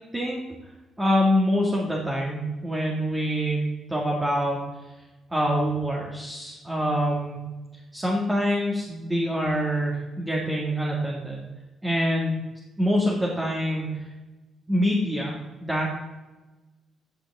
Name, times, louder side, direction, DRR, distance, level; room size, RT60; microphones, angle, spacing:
voice 1, 1.0-3.6 3.9-4.6 5.3-7.4 7.9-11.4 11.8-12.4 12.8-14.1 14.7-15.9, equal, 15° right, -3 dB, 2.0 m, -25 dB
15.5 x 5.3 x 3.6 m, 1.2 s
cardioid pair, 90°, 0 cm